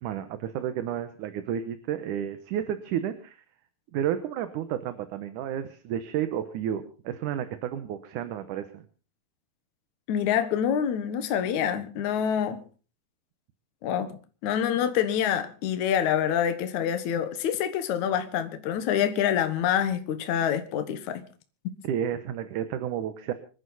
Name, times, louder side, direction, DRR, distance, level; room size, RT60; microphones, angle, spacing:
voice 1, 0.0-3.4 3.9-8.8 21.8-23.3, right 10 dB, 70° right, 2.4 m, -31 dB
voice 2, 10.1-12.6 13.8-21.2, left 9 dB, 65° left, 2.5 m, -26 dB
26.0 x 11.5 x 4.1 m
omnidirectional pair, 3.9 m